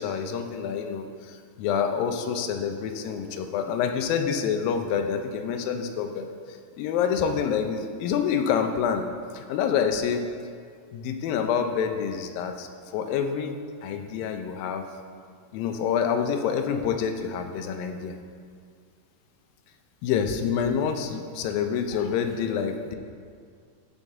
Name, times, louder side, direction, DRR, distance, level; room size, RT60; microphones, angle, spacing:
voice 1, 0.0-9.1 9.3-10.3 10.9-12.7 12.9-14.9 15.5-18.2 20.0-23.0, left 7 dB, 90° left, 6 dB, 2.4 m, -27 dB
sound 1, 1.8-5.6, right 1 dB, 70° right, 2.8 m, -49 dB
15.5 x 5.6 x 3.6 m, 2.1 s
omnidirectional pair, 4.0 m